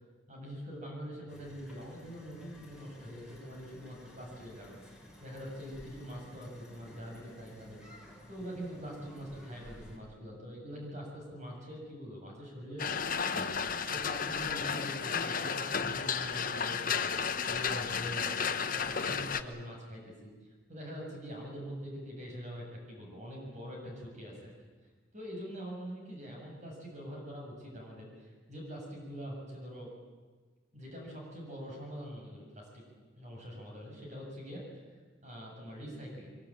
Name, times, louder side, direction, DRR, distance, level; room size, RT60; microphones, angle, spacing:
voice 1, 0.3-7.8 8.3-17.1 17.5-24.5 25.1-29.9 30.7-32.9 33.2-34.6 35.2-36.3, equal, 40° right, -1 dB, 7.6 m, -44 dB
sound 1, 1.3-10.0, left 1 dB, 5° right, 4.7 m, -54 dB
sound 2, 12.8-19.4, left 6 dB, 45° left, 1.2 m, -33 dB
23.5 x 23.5 x 8.9 m, 1.4 s
head